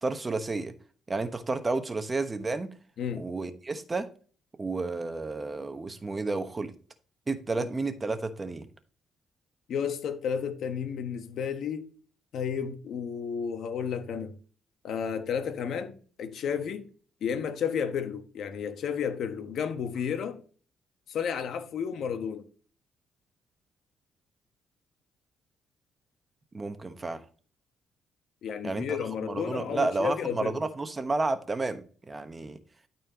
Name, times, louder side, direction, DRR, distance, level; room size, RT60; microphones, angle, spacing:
voice 1, 0.0-0.7 1.1-2.7 3.2-4.1 4.6-6.7 7.3-8.7 26.5-27.2 28.6-29.0 29.3-32.6, right 3 dB, 25° right, 1.0 m, -31 dB
voice 2, 9.7-11.9 12.3-14.4 14.8-16.9 17.2-20.4 21.1-22.4 28.4-30.6, left 7 dB, 70° left, 1.1 m, -32 dB
13.0 x 4.3 x 2.9 m
cardioid pair, 90°, 0 cm